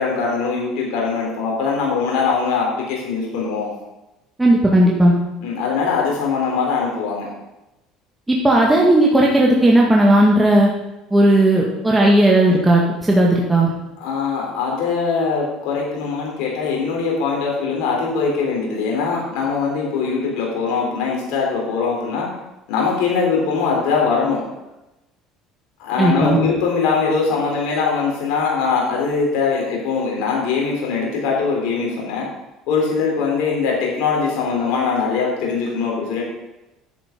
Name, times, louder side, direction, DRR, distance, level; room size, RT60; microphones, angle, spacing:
voice 1, 0.0-3.7 5.4-7.3 14.0-22.3 22.7-24.4 25.8-32.3 32.7-36.2, left 5 dB, 75° left, -2 dB, 4.0 m, -21 dB
voice 2, 4.4-5.1 8.3-10.7 11.1-13.7 26.0-26.4, right 1 dB, 10° right, -3 dB, 2.1 m, -14 dB
10.5 x 8.8 x 5.3 m, 0.97 s
supercardioid pair, 95°, 0 cm